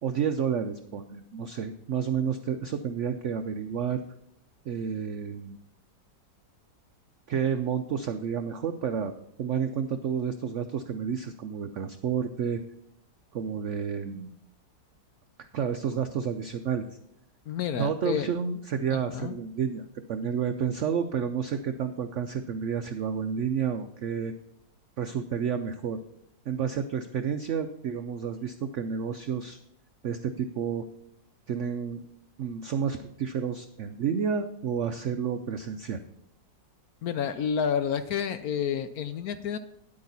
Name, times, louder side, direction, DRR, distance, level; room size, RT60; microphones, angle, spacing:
voice 1, 0.0-4.0 4.7-5.6 7.3-9.1 9.4-12.6 13.3-14.3 15.4-16.9 17.8-19.8 20.1-24.3 25.0-26.0 26.5-29.6 30.0-30.9 31.5-32.0 32.4-36.0, right 7 dB, 85° right, 8 dB, 0.6 m, -30 dB
voice 2, 17.5-18.3 18.9-19.4 37.0-39.6, left 7 dB, 70° left, 10 dB, 0.9 m, -30 dB
9.9 x 8.7 x 4.0 m, 0.76 s
omnidirectional pair, 1.9 m